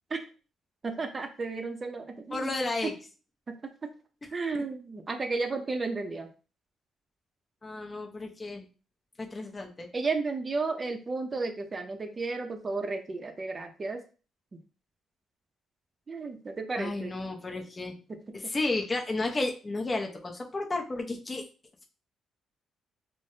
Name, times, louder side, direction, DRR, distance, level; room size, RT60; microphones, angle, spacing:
voice 1, 0.8-2.5 2.8-2.9 3.8-3.9 4.3-6.3 9.9-14.0 14.5-14.6 16.1-17.1, right 3 dB, 35° right, 5 dB, 0.5 m, -33 dB
voice 2, 2.3-2.9 7.6-8.7 9.2-9.9 16.8-18.0 18.3-21.4, left 2 dB, 25° left, 2 dB, 0.6 m, -32 dB
3.2 x 2.0 x 2.6 m, 0.35 s
cardioid pair, 90°, 0 cm